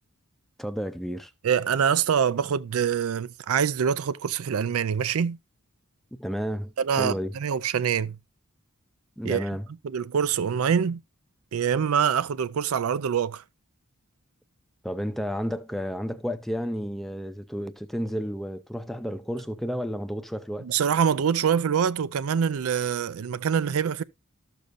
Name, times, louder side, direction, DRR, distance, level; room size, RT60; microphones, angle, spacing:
voice 1, 0.6-1.3 6.2-7.3 9.2-9.7 14.8-20.7, equal, ahead, 0.5 m, -31 dB
voice 2, 1.4-5.4 6.8-8.2 9.2-9.5 9.8-11.0 11.5-13.4 20.6-24.0, right 7 dB, 80° right, 0.4 m, -25 dB
12.5 x 6.9 x 2.5 m
head